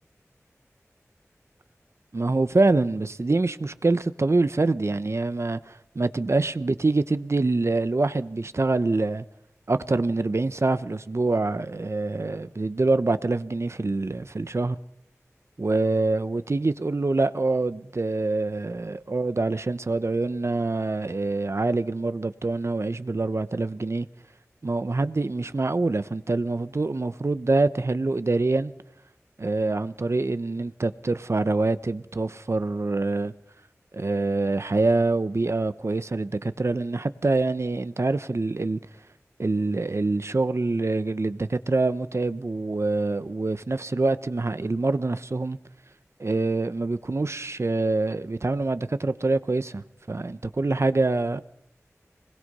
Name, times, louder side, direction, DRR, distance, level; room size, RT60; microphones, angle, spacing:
voice 1, 2.1-9.2 9.7-14.8 15.6-24.1 24.6-28.7 29.4-33.3 33.9-38.8 39.4-45.6 46.2-51.4, right 3 dB, 55° right, 0.9 m, -25 dB
26.0 x 20.5 x 5.5 m
wide cardioid pair, 40°, 5 cm